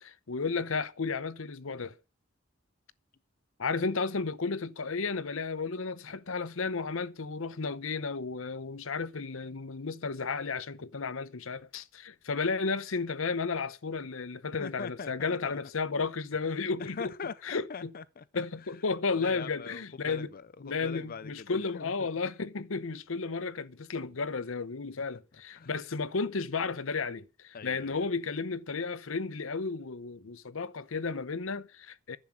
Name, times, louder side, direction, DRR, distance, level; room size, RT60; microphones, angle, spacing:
voice 1, 0.0-2.0 3.6-17.0 17.4-17.9 18.3-20.3 20.6-32.2, left 4 dB, 70° left, 0.8 m, -33 dB
voice 2, 14.6-15.6 16.8-18.2 18.6-18.7 19.1-21.9 25.6-25.7 27.5-28.0, left 5 dB, 45° left, 0.5 m, -42 dB
11.0 x 7.4 x 8.9 m
head